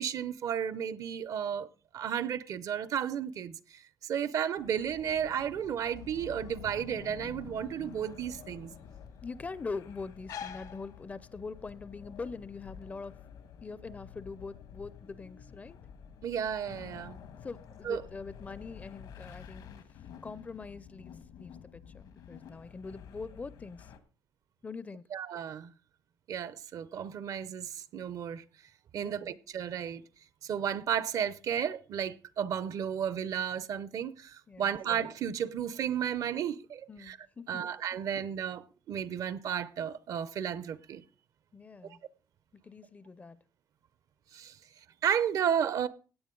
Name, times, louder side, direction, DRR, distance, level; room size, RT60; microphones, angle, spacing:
voice 1, 0.0-8.7 16.2-17.2 17.8-18.0 25.1-25.7 26.3-28.4 28.9-30.0 30.4-37.2 37.5-41.0 41.8-42.0 44.3-44.6 45.0-45.9, right 8 dB, 55° right, 0.6 m, -33 dB
sound 1, 4.5-24.0, left 8 dB, 80° left, 1.6 m, -50 dB
sound 2, 4.7-11.6, left 8 dB, 60° left, 0.8 m, -50 dB
voice 2, 9.2-13.1 13.6-15.8 17.4-19.7 20.2-21.1 21.4-23.9 24.6-25.0 29.0-29.3 34.5-34.7 36.9-37.7 41.5-42.0 42.6-43.4, left 4 dB, 20° left, 0.5 m, -43 dB
16.5 x 9.1 x 3.8 m
cardioid pair, 145°, 7 cm